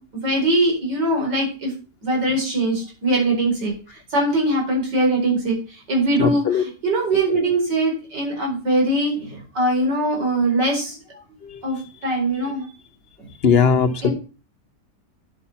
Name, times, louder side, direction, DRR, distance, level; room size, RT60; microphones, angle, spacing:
voice 1, 0.0-1.7 2.0-11.0 11.6-12.7 14.0-14.1, right 1 dB, 85° right, 0 dB, 5.3 m, -22 dB
voice 2, 6.2-6.6 11.4-11.6 13.4-14.1, left 6 dB, 45° left, 11 dB, 0.9 m, -18 dB
10.0 x 8.4 x 5.7 m, 0.35 s
omnidirectional pair, 1.8 m